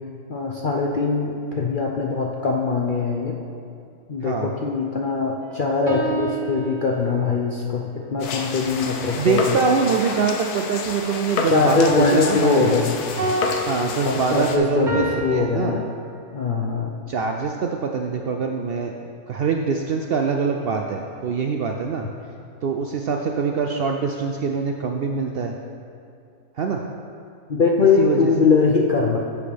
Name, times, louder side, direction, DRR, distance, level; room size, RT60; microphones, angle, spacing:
voice 1, 0.3-3.4 4.1-9.6 11.5-13.0 14.0-15.9 16.3-17.0 27.5-29.2, left 4 dB, 60° left, -1 dB, 0.5 m, -21 dB
sound 1, 5.4-7.3 11.9-15.4, right 2 dB, 35° right, 1.2 m, -29 dB
sound 2, 8.2-14.6, left 4 dB, 90° left, 1.3 m, -30 dB
voice 2, 9.1-12.7 13.7-15.8 17.1-18.9 19.3-22.0 22.6-25.5 26.6-26.8 28.0-28.3, right 5 dB, 90° right, 2 dB, 0.5 m, -24 dB
11.5 x 7.2 x 3.4 m, 2.5 s
omnidirectional pair, 1.6 m